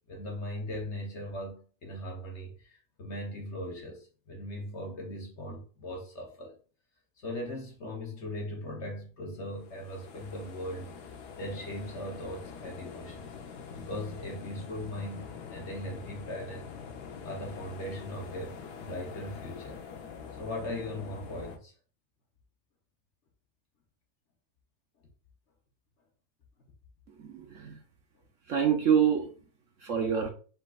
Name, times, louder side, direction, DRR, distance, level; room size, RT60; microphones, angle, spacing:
voice 1, 0.1-6.6 7.2-10.9 11.4-13.3 13.7-16.7 17.2-19.8 20.4-21.7, left 1 dB, 50° left, 1.2 m, -39 dB
sound 1, 9.6-21.6, left 6 dB, 75° left, 1.3 m, -45 dB
voice 2, 27.2-27.8 28.5-29.3 29.8-30.3, right 8 dB, 60° right, 1.0 m, -26 dB
5.5 x 3.7 x 2.4 m
omnidirectional pair, 1.7 m